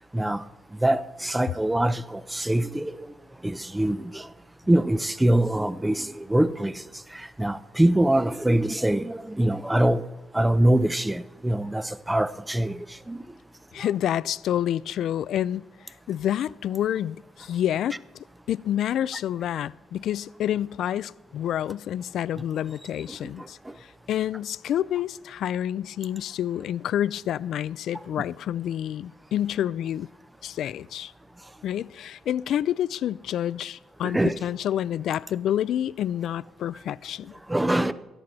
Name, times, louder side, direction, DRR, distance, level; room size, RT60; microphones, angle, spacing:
voice 1, 0.1-0.4 0.8-3.1 3.4-4.3 4.7-6.8 7.1-10.0 10.3-13.2 13.8-13.9 23.1-23.5 34.0-34.4 37.5-37.9, right 1 dB, 10° right, 0.5 m, -24 dB
voice 2, 13.7-18.0 18.5-30.1 30.4-31.1 31.6-37.4, left 11 dB, 70° left, 0.3 m, -28 dB
17.0 x 13.5 x 4.1 m
cardioid pair, 130°, 0 cm